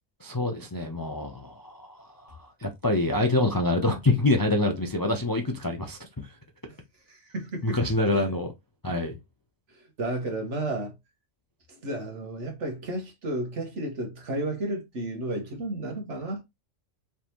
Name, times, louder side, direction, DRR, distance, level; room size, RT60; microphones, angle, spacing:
voice 1, 0.2-6.1 7.6-8.5 8.8-9.2, left 2 dB, 30° left, 0.4 m, -26 dB
voice 2, 7.1-7.8 8.1-8.3 9.7-10.9 11.7-16.4, right 1 dB, 70° right, 1.6 m, -32 dB
4.8 x 3.5 x 2.9 m
omnidirectional pair, 1.3 m